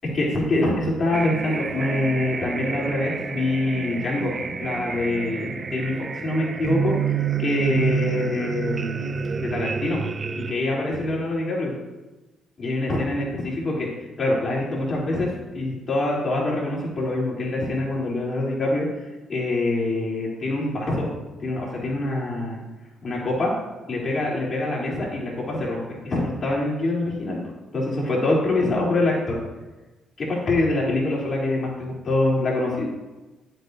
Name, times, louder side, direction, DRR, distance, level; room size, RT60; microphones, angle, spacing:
voice 1, 0.1-4.3 4.6-9.0 9.4-10.0 10.3-11.7 12.6-21.1 21.4-22.6 23.0-23.5 23.9-27.4 27.7-29.4 30.2-32.9, left 2 dB, 45° left, -4 dB, 3.1 m, -25 dB
sound 1, 1.1-10.5, right 6 dB, 35° right, 0.3 m, -29 dB
sound 2, 1.6-9.5, left 1 dB, 25° left, 2.4 m, -43 dB
11.0 x 7.9 x 2.6 m, 1.1 s
cardioid pair, 90°, 0 cm